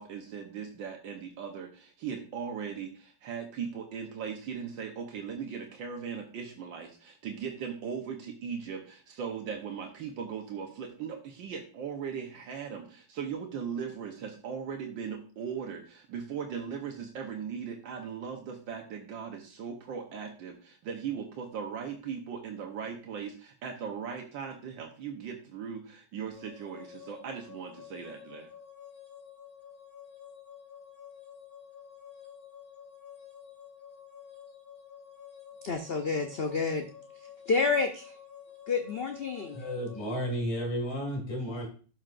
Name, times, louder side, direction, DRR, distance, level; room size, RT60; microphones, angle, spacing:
voice 1, 0.0-28.5, right 7 dB, 85° right, 2 dB, 1.8 m, -38 dB
sound 1, 26.3-40.3, left 8 dB, 35° left, 4.5 m, -50 dB
voice 2, 35.6-36.9 37.5-38.1 38.7-39.6, left 4 dB, 60° left, 4 dB, 0.6 m, -29 dB
voice 3, 39.5-41.7, equal, 20° left, -1 dB, 2.0 m, -32 dB
12.0 x 6.1 x 2.5 m, 0.40 s
omnidirectional pair, 2.0 m